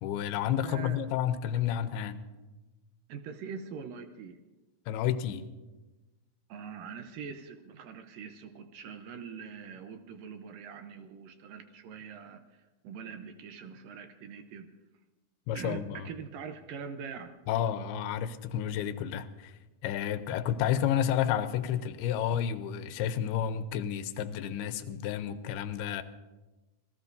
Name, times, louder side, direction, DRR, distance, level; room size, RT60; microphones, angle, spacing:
voice 1, 0.0-2.2 4.9-5.4 15.5-16.1 17.5-19.5 19.8-26.0, left 9 dB, 90° left, 11 dB, 2.7 m, -31 dB
voice 2, 0.6-1.0 3.1-4.4 6.5-12.4 12.8-14.7 15.5-17.3, right 6 dB, 75° right, 7 dB, 2.3 m, -43 dB
27.5 x 18.0 x 2.7 m, 1.2 s
omnidirectional pair, 4.4 m